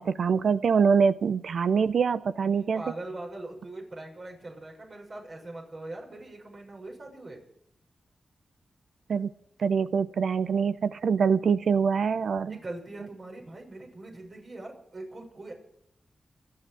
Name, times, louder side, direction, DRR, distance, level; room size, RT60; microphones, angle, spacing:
voice 1, 0.0-2.8 9.1-9.3 9.6-12.6, right 6 dB, 75° right, 15 dB, 0.6 m, -24 dB
voice 2, 2.4-7.4 12.4-15.5, right 2 dB, 50° right, 0 dB, 6.7 m, -41 dB
28.0 x 9.5 x 4.8 m, 0.76 s
cardioid pair, 55°, 0 cm